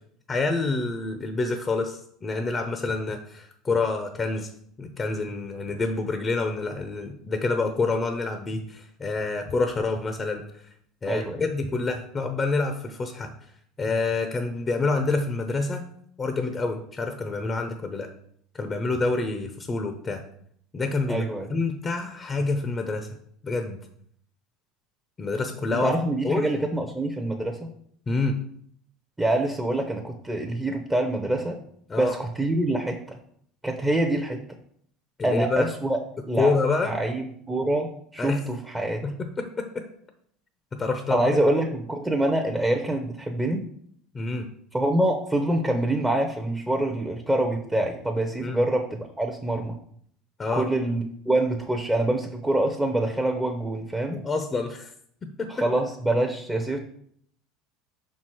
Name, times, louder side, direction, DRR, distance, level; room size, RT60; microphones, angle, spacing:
voice 1, 0.3-4.5 4.8-10.6 11.0-13.3 13.8-15.8 16.2-18.1 18.5-20.2 20.7-23.1 23.4-23.8 25.2-25.9 26.2-26.5 28.1-28.3 31.9-32.1 35.2-35.7 36.4-36.9 38.2-38.4 39.0-39.8 40.7-41.4 44.1-44.5 48.4-48.6 50.4-50.7 54.1-54.9 55.2-55.5, left 3 dB, 25° left, 7 dB, 0.6 m, -27 dB
voice 2, 11.1-11.4 21.1-21.6 25.7-27.7 29.2-31.6 32.0-33.2 33.6-34.4 35.2-36.0 36.3-36.5 36.8-39.0 41.1-43.6 44.7-49.8 50.5-54.2 55.5-56.8, right 1 dB, 10° right, 2 dB, 0.7 m, -25 dB
5.5 x 4.6 x 4.5 m, 0.65 s
supercardioid pair, 105°, 0 cm